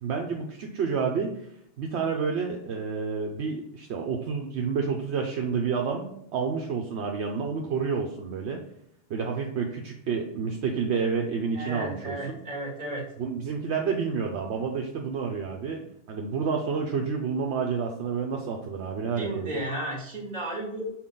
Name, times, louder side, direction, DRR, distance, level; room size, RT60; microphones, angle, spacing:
voice 1, 0.0-1.5 1.8-8.6 9.1-12.4 13.2-15.8 16.1-19.5, right 5 dB, 70° right, 2 dB, 0.9 m, -29 dB
voice 2, 11.5-13.1 19.2-20.9, right 1 dB, 35° right, -2 dB, 2.1 m, -33 dB
6.1 x 4.2 x 3.7 m, 0.75 s
omnidirectional pair, 1.2 m